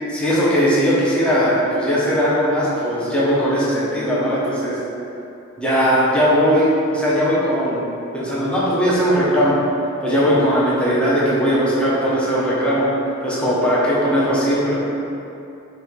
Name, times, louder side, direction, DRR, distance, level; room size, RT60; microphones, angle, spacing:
voice 1, 0.1-4.8 5.6-7.8 8.1-9.6 10.0-12.9 13.2-14.7, equal, 5° left, -9 dB, 0.8 m, -18 dB
5.5 x 2.4 x 3.2 m, 2.8 s
head